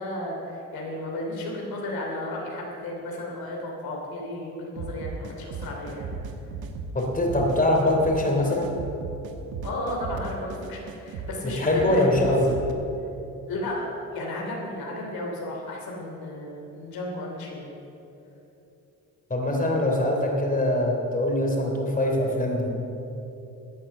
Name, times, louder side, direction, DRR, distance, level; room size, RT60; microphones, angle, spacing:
voice 1, 0.0-6.1 7.8-7.9 9.6-12.6 13.5-17.7, left 1 dB, 70° left, -1 dB, 3.1 m, -33 dB
sound 1, 4.8-12.7, right 4 dB, 75° right, 1.3 m, -36 dB
voice 2, 6.9-8.7 11.4-12.5 19.3-22.7, left 1 dB, 20° left, 0 dB, 3.3 m, -23 dB
15.0 x 8.6 x 6.7 m, 2.9 s
supercardioid pair, 65°, 36 cm